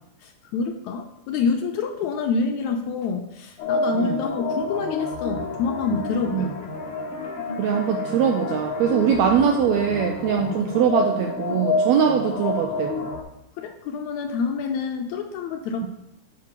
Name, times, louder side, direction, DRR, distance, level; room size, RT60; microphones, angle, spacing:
voice 1, 0.2-6.7 10.4-10.7 13.6-15.9, left 5 dB, 80° left, 4 dB, 1.8 m, -27 dB
sound 1, 3.6-13.2, left 3 dB, 60° left, 1.5 m, -29 dB
voice 2, 7.6-13.1, right 8 dB, 85° right, 3 dB, 1.6 m, -22 dB
7.3 x 3.8 x 5.8 m, 0.82 s
omnidirectional pair, 3.7 m